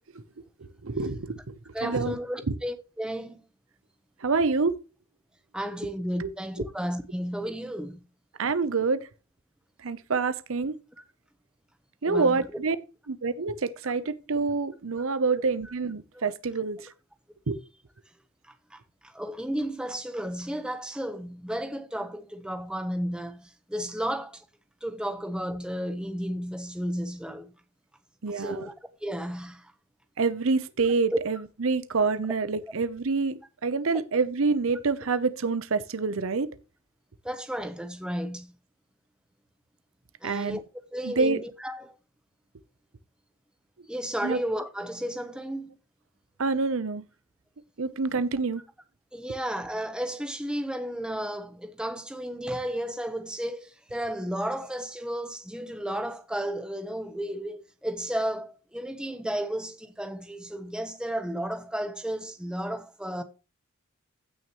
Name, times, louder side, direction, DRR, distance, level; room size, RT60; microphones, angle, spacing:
voice 1, 0.8-1.5 1.8-2.2 4.2-4.8 6.2-6.3 8.4-9.0 9.8-10.8 12.0-12.8 13.1-16.8 17.5-17.6 28.2-28.7 30.2-36.5 40.2-40.6 41.0-41.4 44.2-44.4 46.4-47.0 47.8-48.6, right 4 dB, 65° right, 0.7 m, -27 dB
voice 2, 1.7-3.4 5.5-8.0 12.0-12.5 13.8-13.9 15.6-15.7 16.1-16.3 16.8-16.9 18.7-24.4 24.8-27.5 28.3-28.7 29.0-29.7 31.1-31.2 37.2-38.5 40.2-40.6 40.9-42.0 43.9-45.7 49.1-63.2, equal, 5° right, 0.9 m, -33 dB
15.5 x 6.2 x 3.0 m
head